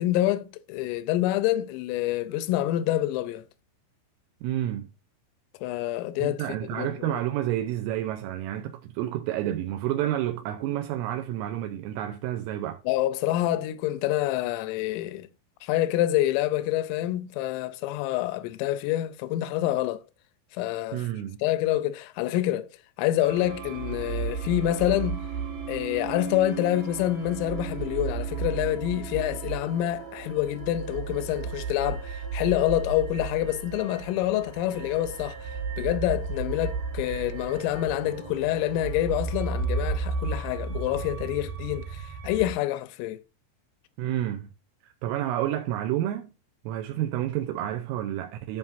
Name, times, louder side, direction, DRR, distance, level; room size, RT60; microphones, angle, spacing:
voice 1, 0.0-3.4 5.6-6.4 6.8-7.2 12.9-15.3 15.6-20.0 20.5-21.0 21.4-22.7 23.0-25.2 25.7-35.5 35.8-43.2, left 14 dB, 85° left, 3.3 m, -27 dB
voice 2, 4.4-4.9 6.2-12.8 20.9-21.4 44.0-44.5 44.8-46.3 46.7-48.6, right 12 dB, 85° right, 3.3 m, -30 dB
sound 1, 23.2-42.5, right 5 dB, 55° right, 3.7 m, -34 dB
14.0 x 5.6 x 2.6 m
omnidirectional pair, 5.8 m